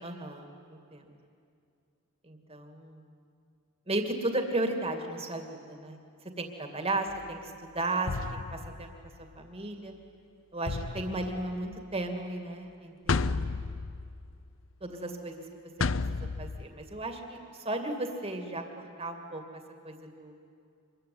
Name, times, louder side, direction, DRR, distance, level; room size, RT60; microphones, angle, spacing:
voice 1, 0.0-1.0 2.2-3.1 3.9-6.0 6.4-8.9 9.4-9.9 10.5-13.5 14.8-15.7 16.1-18.6 19.0-20.3, right 2 dB, 30° right, 4 dB, 2.6 m, -35 dB
sound 1, 7.1-7.3 8.1-9.4 10.7-12.0 13.1-14.6 15.8-16.7, left 4 dB, 65° left, 0.7 m, -33 dB
25.5 x 22.5 x 9.7 m, 2.4 s
head